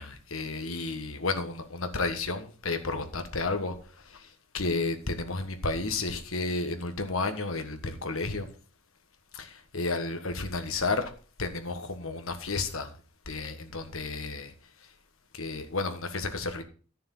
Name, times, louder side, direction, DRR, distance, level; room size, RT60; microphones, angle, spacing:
voice 1, 0.0-3.7 4.1-4.3 4.5-8.5 9.3-11.1 11.4-12.9 13.3-14.5 15.3-16.6, left 3 dB, 75° left, 1.5 m, -32 dB
12.0 x 6.7 x 5.5 m
head